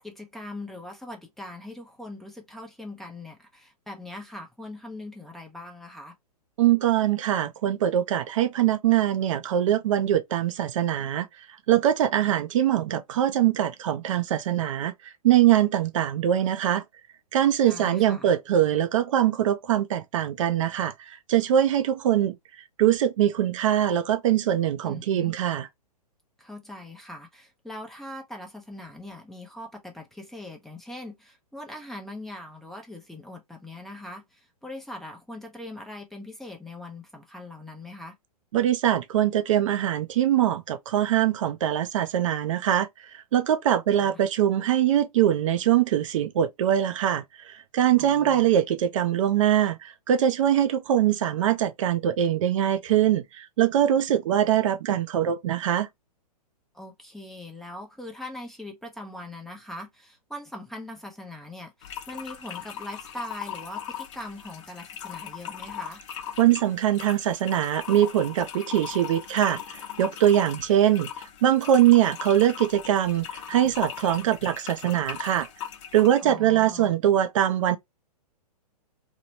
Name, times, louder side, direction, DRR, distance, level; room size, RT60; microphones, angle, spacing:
voice 1, 0.0-6.1 17.6-18.3 24.9-25.3 26.4-38.1 44.0-44.2 48.0-48.5 56.7-66.0 76.2-76.9, left 1 dB, ahead, 0.6 m, -41 dB
voice 2, 6.6-11.3 11.7-16.8 17.3-22.4 22.8-25.7 38.5-42.9 43.1-55.9 66.4-71.1 71.4-75.5 75.9-77.8, right 11 dB, 50° right, 0.4 m, -23 dB
sound 1, 61.8-76.2, left 9 dB, 50° left, 0.6 m, -39 dB
2.9 x 2.1 x 2.7 m
hypercardioid pair, 120°, 20 cm